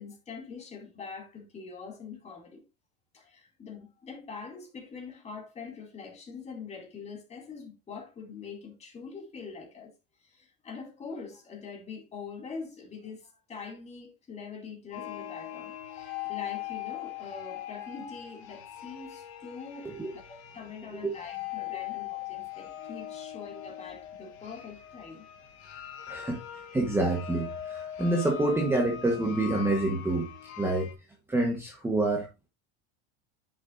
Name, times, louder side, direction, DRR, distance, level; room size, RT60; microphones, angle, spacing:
voice 1, 0.0-2.6 3.1-9.9 10.2-25.2, left 5 dB, 20° left, 2.5 m, -44 dB
sound 1, 14.9-30.9, left 12 dB, 80° left, 3.0 m, -41 dB
voice 2, 26.1-26.4 26.7-30.3 30.6-30.9 31.3-32.3, right 2 dB, 5° right, 1.1 m, -27 dB
10.0 x 6.1 x 2.5 m
supercardioid pair, 155°, 32 cm